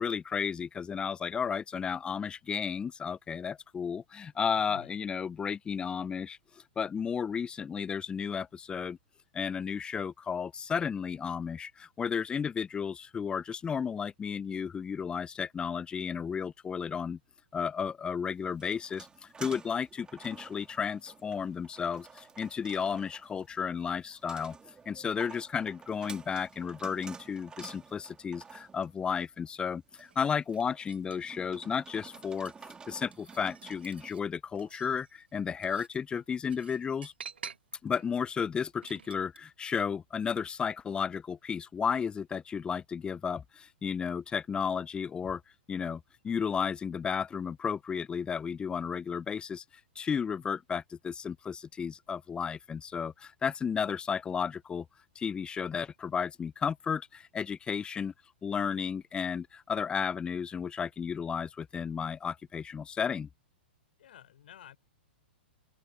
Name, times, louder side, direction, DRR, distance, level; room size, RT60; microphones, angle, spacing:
voice 1, 0.0-6.4 6.8-9.0 9.3-17.2 17.5-19.1 19.4-24.6 24.9-32.5 32.9-37.1 37.8-45.4 45.7-49.6 50.0-54.9 55.2-58.1 58.4-63.3, left 6 dB, 15° left, 0.4 m, -33 dB
voice 2, 4.6-5.0 64.0-64.8, left 11 dB, 65° left, 3.6 m, -51 dB
sound 1, 18.2-34.1, right 5 dB, 15° right, 3.1 m, -51 dB
sound 2, 29.9-31.4 31.9-32.7 33.1-34.2 34.6-39.4, right 6 dB, 80° right, 3.1 m, -49 dB
open air
hypercardioid pair, 110°, 6 cm